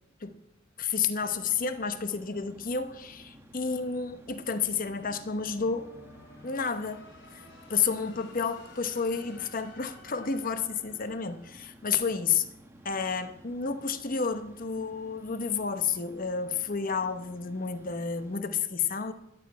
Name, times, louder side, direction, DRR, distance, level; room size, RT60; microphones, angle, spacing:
voice 1, 0.8-5.9 6.4-7.4 7.7-12.5 12.8-19.1, left 5 dB, 45° left, 10 dB, 0.9 m, -31 dB
sound 1, 1.2-18.4, right 1 dB, 15° right, 1.0 m, -54 dB
sound 2, 1.5-12.4, left 2 dB, 65° left, 3.5 m, -55 dB
13.0 x 6.2 x 8.5 m, 0.87 s
head